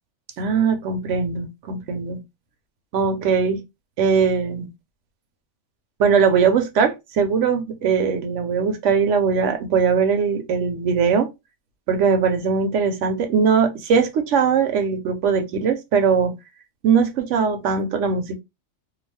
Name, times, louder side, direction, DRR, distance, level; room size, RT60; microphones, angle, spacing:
voice 1, 0.4-2.2 2.9-3.6 4.0-4.7 6.0-11.3 11.9-16.3 16.8-18.4, right 6 dB, 70° right, 0.9 m, -20 dB
2.4 x 2.4 x 3.3 m
omnidirectional pair, 1.3 m